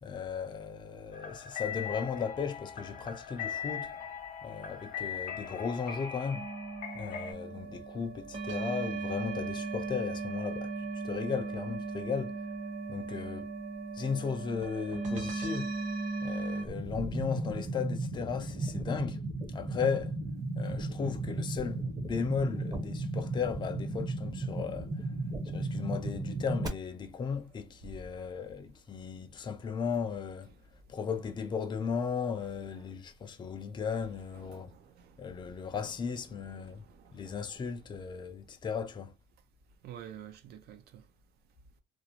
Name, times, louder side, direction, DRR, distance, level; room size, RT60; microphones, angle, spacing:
voice 1, 0.0-4.0 4.4-6.5 6.9-12.4 12.9-13.5 13.9-15.8 16.2-19.2 19.5-20.2 20.5-25.1 25.4-30.5 30.9-34.7 35.2-36.8 37.1-39.1, left 6 dB, 25° left, 0.4 m, -36 dB
sound 1, 1.1-7.3, left 8 dB, 55° left, 0.9 m, -40 dB
sound 2, 6.3-16.6, right 3 dB, 45° right, 1.0 m, -37 dB
sound 3, 16.7-26.7, right 2 dB, 20° right, 0.7 m, -35 dB
voice 2, 34.3-35.7 36.4-37.6 39.8-41.0, right 9 dB, 70° right, 0.5 m, -50 dB
2.5 x 2.0 x 2.8 m
cardioid pair, 110°, 17 cm